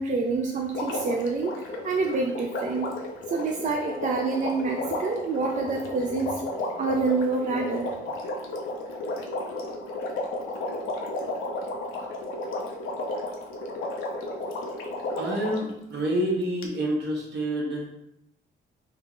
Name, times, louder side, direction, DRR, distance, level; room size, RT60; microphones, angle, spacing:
voice 1, 0.0-3.0 3.3-6.4 6.8-7.9, right 4 dB, 40° right, 0 dB, 0.4 m, -27 dB
Water, 0.7-15.7 16.6-16.7, left 2 dB, 85° left, 0.6 m, -33 dB
voice 2, 15.2-17.9, right 1 dB, 60° right, -3 dB, 1.2 m, -28 dB
3.7 x 2.0 x 3.8 m, 0.80 s
cardioid pair, 90°, 20 cm